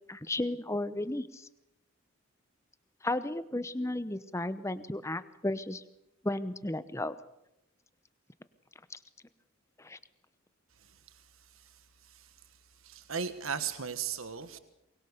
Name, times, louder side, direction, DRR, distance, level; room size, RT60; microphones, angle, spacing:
voice 1, 0.1-1.5 3.0-5.8 6.2-7.2 8.9-9.0 9.8-10.0, left 1 dB, 15° left, 14 dB, 0.8 m, -34 dB
voice 2, 10.8-11.2 11.5-11.7 12.0-12.3 12.8-14.6, right 7 dB, 75° right, 11 dB, 1.4 m, -37 dB
23.5 x 21.0 x 6.7 m, 0.88 s
head